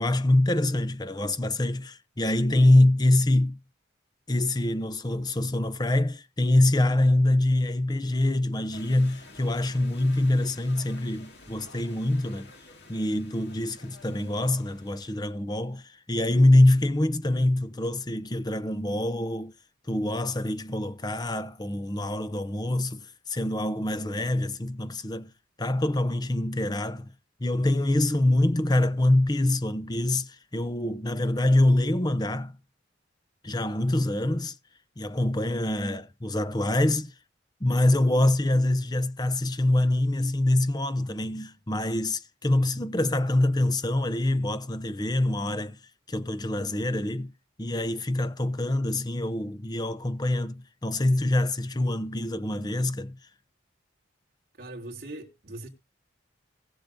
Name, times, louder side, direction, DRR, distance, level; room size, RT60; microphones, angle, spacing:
voice 1, 0.0-3.6 4.3-12.5 12.9-19.5 19.9-25.3 25.6-27.1 27.4-32.6 33.4-34.6 35.0-37.1 37.6-45.8 46.1-47.3 47.6-53.2, left 1 dB, 20° left, 0.7 m, -25 dB
sound 1, 8.7-15.2, left 2 dB, 60° left, 2.4 m, -51 dB
voice 2, 54.6-55.7, right 1 dB, 50° right, 3.0 m, -41 dB
19.5 x 6.6 x 2.7 m
head